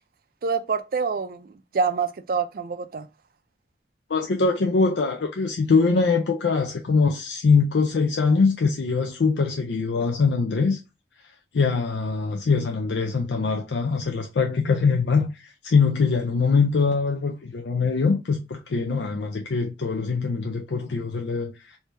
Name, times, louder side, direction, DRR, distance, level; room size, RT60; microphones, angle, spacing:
voice 1, 0.4-3.1, right 5 dB, 55° right, 0.4 m, -26 dB
voice 2, 4.1-10.8 11.5-21.8, left 4 dB, 80° left, 0.5 m, -23 dB
3.2 x 2.7 x 3.2 m
head